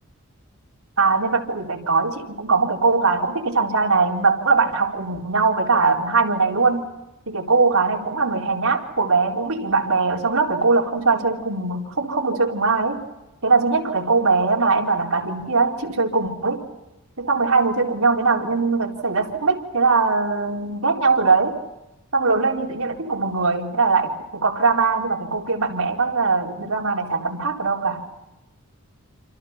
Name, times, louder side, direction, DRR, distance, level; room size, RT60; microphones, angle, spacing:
voice 1, 1.0-6.8 7.3-13.0 13.4-16.6 17.2-21.6 22.1-28.1, right 4 dB, 80° right, -1 dB, 4.2 m, -21 dB
29.0 x 27.0 x 5.9 m, 0.98 s
head